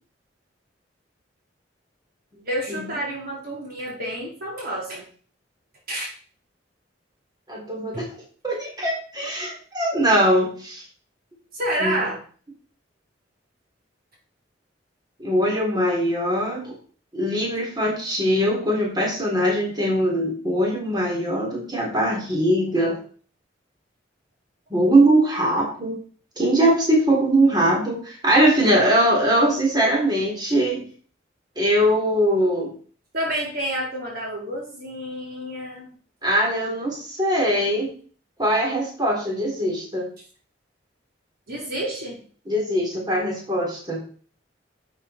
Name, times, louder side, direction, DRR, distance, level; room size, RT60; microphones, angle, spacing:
voice 1, 2.5-5.0 5.9-6.1 7.9-8.0 11.5-12.2 33.1-35.9 41.5-42.2, right 1 dB, 55° right, -2 dB, 4.3 m, -29 dB
voice 2, 7.5-8.1 8.4-10.8 11.8-12.0 15.2-16.7 17.1-23.0 24.7-26.0 26.4-30.8 31.6-32.7 36.2-37.9 38.4-40.1 42.5-44.0, right 1 dB, 25° right, -2 dB, 3.7 m, -21 dB
11.5 x 8.4 x 4.4 m, 0.43 s
head